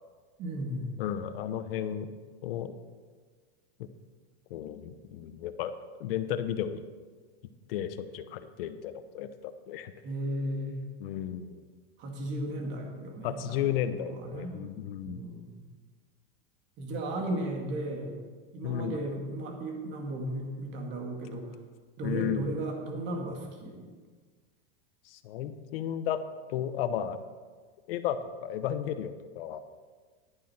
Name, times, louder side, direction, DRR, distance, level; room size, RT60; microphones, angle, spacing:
voice 1, 0.4-1.0 10.0-10.8 12.0-14.6 15.0-15.6 16.8-18.2 18.5-21.5 22.0-23.9, right 1 dB, 40° right, 1 dB, 2.2 m, -35 dB
voice 2, 1.0-2.1 2.4-2.7 3.8-3.9 4.5-5.7 6.0-6.8 7.7-9.9 11.0-11.6 13.2-15.2 18.6-19.0 22.0-22.5 25.1-26.2 26.5-27.2 27.9-29.6, left 10 dB, 70° left, 10 dB, 1.0 m, -33 dB
11.0 x 10.0 x 4.4 m, 1.5 s
supercardioid pair, 145°, 30 cm